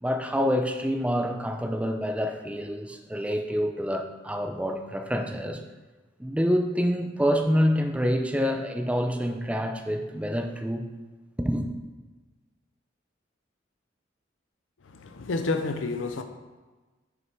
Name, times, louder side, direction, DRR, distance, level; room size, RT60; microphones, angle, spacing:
voice 1, 0.0-5.6 6.2-10.9 11.4-11.7, equal, 5° right, 5 dB, 0.6 m, -27 dB
voice 2, 14.8-16.2, left 3 dB, 80° left, 7 dB, 0.6 m, -29 dB
6.4 x 5.5 x 4.5 m, 1.2 s
head